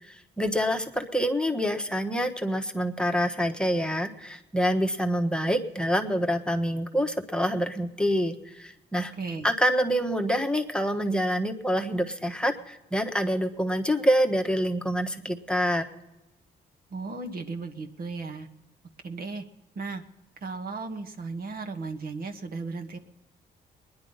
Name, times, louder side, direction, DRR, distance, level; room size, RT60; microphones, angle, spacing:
voice 1, 0.0-9.1 9.4-15.9, equal, 5° left, 4 dB, 1.3 m, -26 dB
voice 2, 9.2-9.5 16.9-18.5 19.0-19.4 19.7-20.0 20.4-23.0, right 3 dB, 55° right, 5 dB, 1.4 m, -35 dB
21.0 x 10.5 x 5.6 m, 1.1 s
cardioid pair, 70°, 18 cm